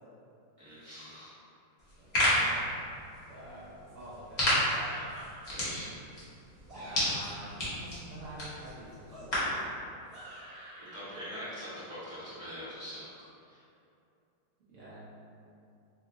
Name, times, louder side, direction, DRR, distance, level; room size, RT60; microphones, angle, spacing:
voice 1, 0.6-1.3 5.5-5.9 10.8-13.1 13.4-13.7, equal, 25° right, -14 dB, 0.8 m, -43 dB
sound 1, 1.8-9.6, left 1 dB, 65° left, 0.4 m, -32 dB
voice 2, 2.0-2.8 3.3-4.8 6.7-9.5 14.7-15.1, right 1 dB, 65° right, -9 dB, 0.7 m, -47 dB
sound 2, 4.7-5.5 6.5-7.7 9.1-11.2, right 1 dB, 50° right, 1.5 m, -48 dB
3.5 x 3.0 x 2.6 m, 2.6 s
omnidirectional pair, 2.3 m